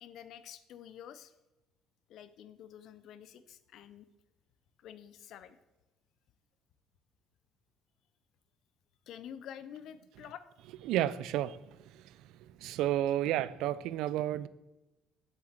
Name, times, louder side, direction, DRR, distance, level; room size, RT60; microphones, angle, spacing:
voice 1, 0.0-1.3 2.1-4.1 4.8-5.6 9.1-10.4, left 9 dB, 55° left, 13 dB, 0.7 m, -49 dB
voice 2, 10.9-11.6 11.9-12.0 12.4-14.5, right 13 dB, 75° right, 18 dB, 0.4 m, -31 dB
7.7 x 7.6 x 7.4 m, 1.0 s
cardioid pair, 160°, 0 cm